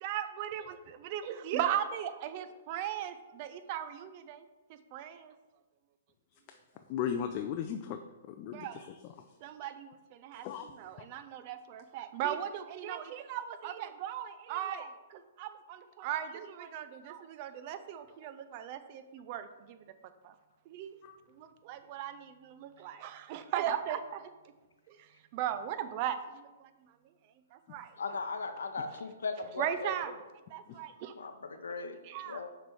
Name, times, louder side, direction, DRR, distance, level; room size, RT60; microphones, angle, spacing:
voice 1, 0.0-4.4 4.9-5.3 8.5-8.9 9.4-10.4 10.7-19.8 20.2-20.3 20.7-20.9 21.3-24.3 24.9-25.0 25.3-26.7 27.5-27.9 29.6-30.1 30.5-31.1 32.0-32.4, right 10 dB, 40° right, 10 dB, 0.5 m, -37 dB
voice 2, 6.9-8.0 8.3-9.0 10.3-10.7 21.0-21.2 30.7-30.8, left 8 dB, 35° left, 6 dB, 0.4 m, -36 dB
voice 3, 28.0-29.9 31.1-32.0 32.3-32.5, left 4 dB, 85° left, 7 dB, 0.7 m, -38 dB
6.5 x 3.3 x 4.7 m, 1.1 s
hypercardioid pair, 140°, 0 cm